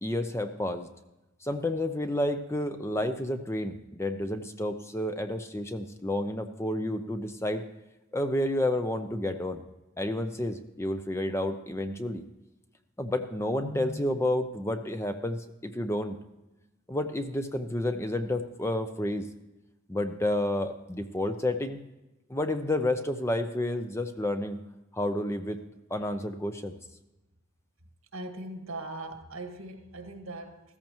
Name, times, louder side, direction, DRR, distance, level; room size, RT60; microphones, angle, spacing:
voice 1, 0.0-0.9 1.4-7.6 8.1-9.6 10.0-12.2 13.0-16.2 16.9-19.3 19.9-21.8 22.3-24.6 24.9-25.6 25.9-26.7, left 1 dB, 10° left, 8 dB, 0.6 m, -30 dB
voice 2, 28.1-30.8, right 2 dB, 70° right, 5 dB, 1.7 m, -40 dB
15.0 x 14.0 x 3.0 m, 1.0 s
head